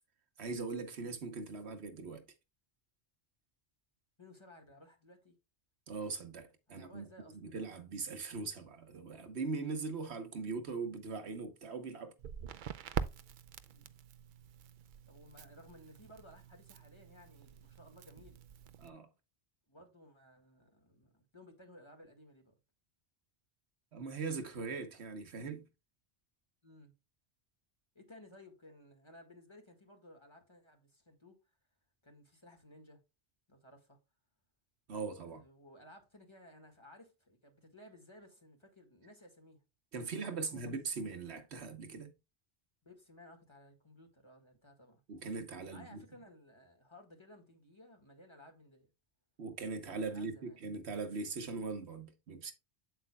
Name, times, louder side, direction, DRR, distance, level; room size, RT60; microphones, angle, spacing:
voice 1, 0.4-2.2 5.9-7.0 7.4-12.1 18.8-19.1 23.9-25.6 34.9-35.4 39.9-42.1 45.1-46.0 49.4-52.5, right 4 dB, 75° right, 1.3 m, -40 dB
voice 2, 4.2-5.4 6.7-7.4 10.8-10.9 13.7-13.9 15.1-18.4 19.7-22.5 26.6-26.9 27.9-31.4 32.0-33.0 33.5-34.0 35.2-39.6 40.3-40.7 42.8-45.0 45.7-48.9 50.1-50.6, left 1 dB, 25° left, 1.8 m, -58 dB
Crackle, 12.2-18.9, right 8 dB, 55° right, 0.6 m, -45 dB
8.1 x 7.9 x 2.3 m
omnidirectional pair, 1.1 m